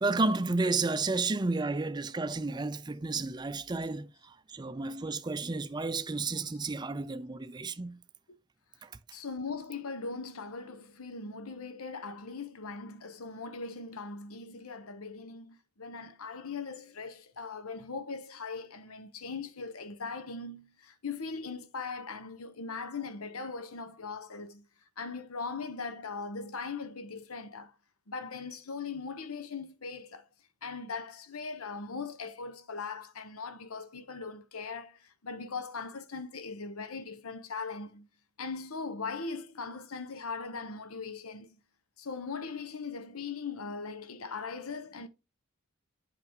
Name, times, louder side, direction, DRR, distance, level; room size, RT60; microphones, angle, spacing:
voice 1, 0.0-8.0 8.8-8.9, right 3 dB, 20° right, 0.4 m, -32 dB
voice 2, 9.1-24.7 25.0-27.7 28.1-30.3 30.6-38.1 38.4-41.6 42.0-45.1, left 4 dB, 80° left, 1.0 m, -40 dB
8.2 x 5.9 x 3.6 m
head